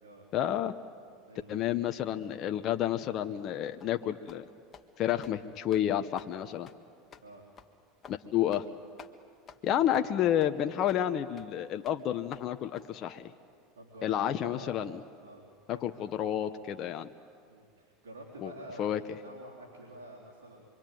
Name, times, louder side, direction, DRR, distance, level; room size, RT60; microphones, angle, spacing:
voice 1, 0.3-0.7 1.5-4.4 5.0-6.7 8.1-8.6 9.6-13.3 14.0-15.0 15.7-17.1 18.4-18.5 18.8-19.0, left 11 dB, 45° left, 7 dB, 1.0 m, -30 dB
voice 2, 1.3-1.6 7.2-7.4 9.7-9.8 13.7-14.9 15.2-15.4 15.7-16.0 17.5-20.7, right 1 dB, 90° right, -3 dB, 3.9 m, -49 dB
sound 1, 3.8-3.9 4.3-4.4 4.7-4.9 5.2-5.4 5.7-5.9 6.2-6.3 6.7-6.8 7.1-7.3 7.6-7.7 8.0-8.2 8.5-8.7 9.0-9.1 9.5-9.6 9.9-10.1 10.4-10.5 10.9-11.0 11.4-11.5 11.8-12.0 12.3-12.4 12.8-12.9, left 7 dB, 30° left, 1.6 m, -51 dB
26.5 x 24.0 x 9.3 m, 2.2 s
hypercardioid pair, 95°, 0 cm